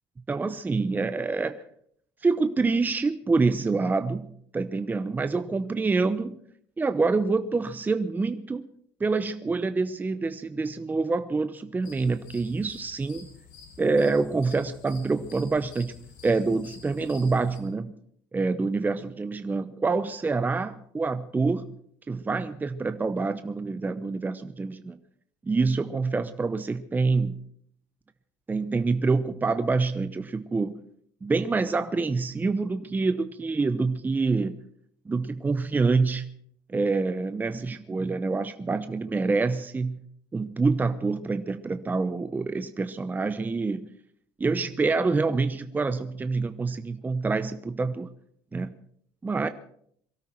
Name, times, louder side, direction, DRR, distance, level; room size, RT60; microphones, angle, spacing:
voice 1, 0.3-1.5 2.2-4.3 4.5-6.4 6.8-8.6 9.0-13.3 13.8-15.9 16.2-17.9 18.3-21.7 22.1-25.0 25.5-27.3 28.5-30.7 31.2-34.5 35.1-36.3 36.7-40.0 40.3-43.8 44.4-48.1 48.5-48.7 49.2-49.5, right 3 dB, 20° right, 11 dB, 0.8 m, -26 dB
sound 1, 11.8-17.6, left 6 dB, 90° left, 6.2 m, -49 dB
23.5 x 13.0 x 4.5 m, 0.65 s
cardioid pair, 110°, 10 cm